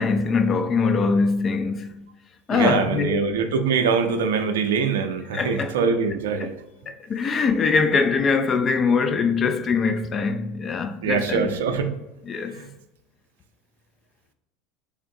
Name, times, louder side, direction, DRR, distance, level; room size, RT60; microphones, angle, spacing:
voice 1, 0.0-2.0 2.5-3.2 5.3-5.7 6.4-6.5 6.9-11.5 12.3-12.6, left 4 dB, 35° left, 0.4 m, -23 dB
voice 2, 2.5-6.5 11.0-11.9 12.5-12.7, right 5 dB, 80° right, 0.4 m, -23 dB
3.6 x 3.5 x 2.6 m
hypercardioid pair, 80°, 0 cm